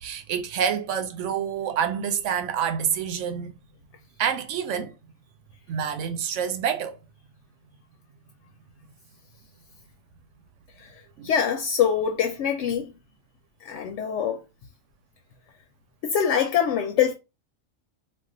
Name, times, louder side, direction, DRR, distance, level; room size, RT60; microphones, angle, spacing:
voice 1, 0.0-3.6 4.2-4.9 5.7-7.0 11.2-11.3, right 8 dB, 70° right, 0.9 m, -27 dB
voice 2, 10.8-12.9 13.6-14.4 16.0-17.1, left 8 dB, 70° left, 0.8 m, -24 dB
2.4 x 2.3 x 3.6 m
omnidirectional pair, 1.4 m